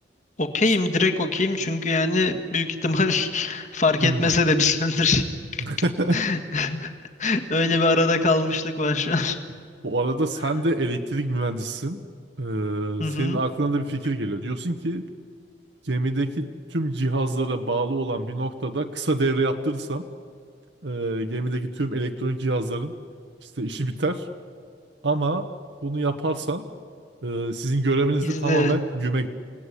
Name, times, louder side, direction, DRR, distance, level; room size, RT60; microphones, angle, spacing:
voice 1, 0.4-5.2 5.5-5.6 6.1-6.9 7.2-9.4 13.0-13.4 28.2-28.8, left 3 dB, 45° left, 6 dB, 1.7 m, -23 dB
voice 2, 4.0-4.3 5.6-6.2 9.8-12.0 12.4-15.1 15.8-20.0 20.8-22.9 23.4-24.3 25.0-25.5 25.8-26.7 27.2-29.3, right 2 dB, 80° right, 5 dB, 1.2 m, -26 dB
29.0 x 17.5 x 9.9 m, 2.2 s
head